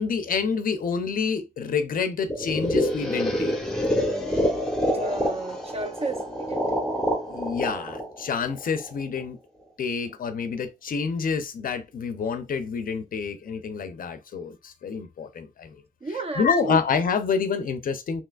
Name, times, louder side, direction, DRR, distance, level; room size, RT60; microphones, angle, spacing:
voice 1, 0.0-3.5 7.3-9.4 9.8-15.8 16.4-18.2, left 5 dB, 45° left, 0.5 m, -28 dB
sound 1, 2.3-9.2, equal, 5° left, 0.9 m, -27 dB
voice 2, 4.8-6.8 16.0-16.8, right 2 dB, 30° right, 0.7 m, -32 dB
3.2 x 2.9 x 2.3 m
cardioid pair, 90°, 20 cm